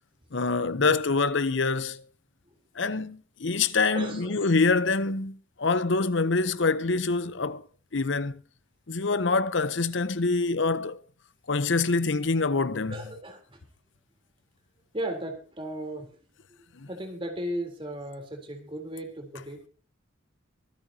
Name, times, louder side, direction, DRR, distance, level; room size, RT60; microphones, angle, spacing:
voice 1, 0.3-2.0 2.8-7.6 7.9-8.4 8.9-11.0 11.5-12.9 16.8-16.9, left 3 dB, 65° left, 0.8 m, -25 dB
voice 2, 3.9-4.4 12.9-13.6 14.9-16.2 16.9-19.7, right 1 dB, 25° right, 3.6 m, -36 dB
25.0 x 9.0 x 2.9 m
head